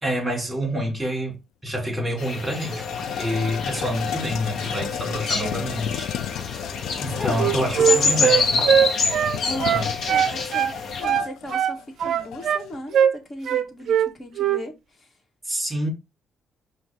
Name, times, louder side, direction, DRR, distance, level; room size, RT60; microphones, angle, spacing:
voice 1, 0.0-1.4 1.6-6.1 7.0-8.6 9.6-9.9 15.4-15.9, equal, 15° right, 2.7 m, -27 dB
sound 1, 1.7-1.8 2.1-12.8, left 10 dB, 85° left, 0.4 m, -33 dB
sound 2, 2.2-11.0, left 4 dB, 70° left, 1.2 m, -27 dB
voice 2, 5.4-5.7 7.2-8.4 9.4-15.1, left 1 dB, 35° left, 1.8 m, -37 dB
Wind instrument woodwind instrument, 7.3-10.7 11.0-12.6 12.9-13.2 13.5-14.1 14.4-14.6, right 9 dB, 70° right, 0.4 m, -21 dB
5.3 x 2.6 x 3.5 m
cardioid pair, 90°, 0 cm